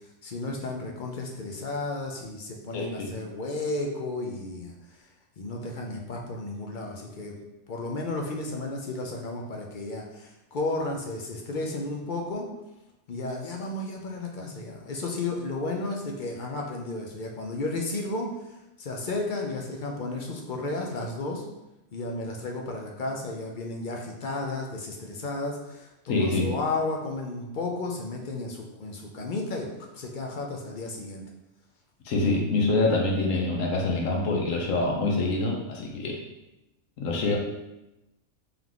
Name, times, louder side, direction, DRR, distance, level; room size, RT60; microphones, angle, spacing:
voice 1, 0.2-4.7 5.4-7.4 7.7-12.5 13.1-18.3 18.8-21.4 21.9-31.2, left 2 dB, 50° left, 0 dB, 0.6 m, -33 dB
voice 2, 2.7-3.1 26.1-26.5 32.0-36.2 37.0-37.4, left 2 dB, 85° left, 0 dB, 1.1 m, -25 dB
3.5 x 3.0 x 3.8 m, 0.94 s
omnidirectional pair, 1.3 m